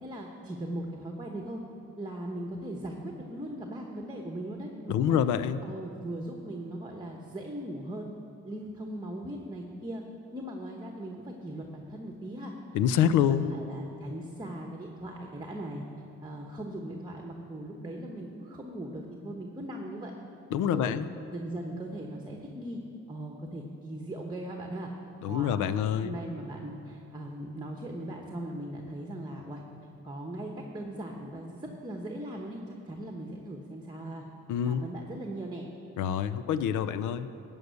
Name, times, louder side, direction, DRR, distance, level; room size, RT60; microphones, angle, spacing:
voice 1, 0.0-1.6 2.0-5.2 5.6-8.1 8.4-10.0 10.3-12.5 13.2-15.8 16.2-20.1 20.6-21.0 21.3-22.8 23.1-24.9 25.3-29.6 30.0-34.2 34.6-35.7, right 1 dB, 15° right, 1 dB, 1.0 m, -39 dB
voice 2, 4.9-5.7 12.7-13.5 20.5-21.1 25.2-26.1 34.5-34.8 36.0-37.3, left 9 dB, 80° left, 14 dB, 0.5 m, -26 dB
13.5 x 5.4 x 8.1 m, 2.9 s
cardioid pair, 90°, 30 cm